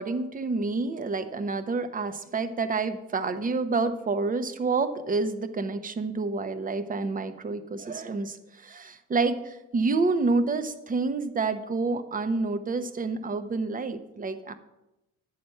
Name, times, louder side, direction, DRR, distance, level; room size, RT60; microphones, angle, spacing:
voice 1, 0.0-14.5, right 3 dB, 25° right, 11 dB, 0.8 m, -28 dB
9.4 x 4.3 x 6.6 m, 0.91 s
supercardioid pair, 95°, 32 cm